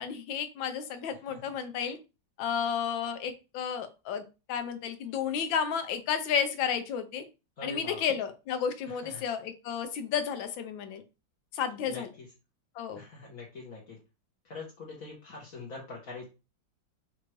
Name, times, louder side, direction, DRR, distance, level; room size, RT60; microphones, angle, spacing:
voice 1, 0.0-2.0 2.4-7.2 7.6-11.0 11.5-12.1 12.7-13.0, left 7 dB, 85° left, 10 dB, 1.4 m, -32 dB
voice 2, 7.6-8.0 8.9-9.2 11.9-12.0 12.9-14.0 14.4-16.3, left 3 dB, 55° left, -2 dB, 1.3 m, -43 dB
5.6 x 2.5 x 3.1 m, 0.29 s
omnidirectional pair, 2.0 m